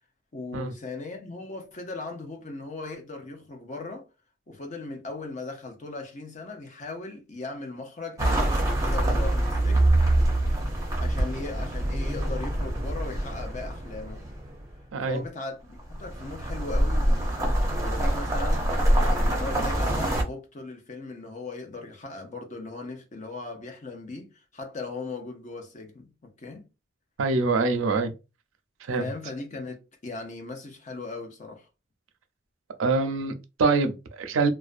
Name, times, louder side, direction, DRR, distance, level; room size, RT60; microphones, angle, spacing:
voice 1, 0.3-4.1 4.5-9.9 10.7-14.2 15.1-26.6 28.9-31.7, left 3 dB, 40° left, 0.6 m, -38 dB
sound 1, 8.2-14.7 15.8-20.2, right 1 dB, 15° right, 0.6 m, -25 dB
voice 2, 27.2-28.1 28.9-29.1 32.8-34.5, right 3 dB, 90° right, 0.5 m, -24 dB
2.4 x 2.1 x 2.4 m
head